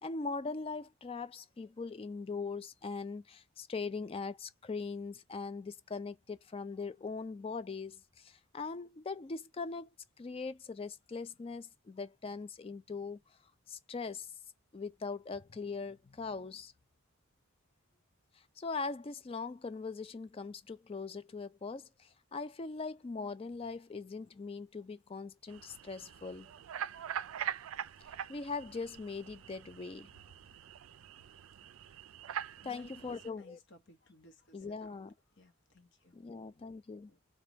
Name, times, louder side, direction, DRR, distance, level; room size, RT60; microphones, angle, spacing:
voice 1, 0.0-9.9 10.2-13.2 13.7-14.3 14.7-16.7 18.6-26.5 28.3-30.1 32.6-33.6 34.5-35.1 36.1-37.1, left 4 dB, 25° left, 0.4 m, -41 dB
sound 1, 25.5-33.3, right 9 dB, 75° right, 0.4 m, -43 dB
voice 2, 32.6-35.0 35.4-36.1 37.1-37.2, left 1 dB, 60° left, 0.9 m, -58 dB
3.8 x 2.3 x 3.4 m
head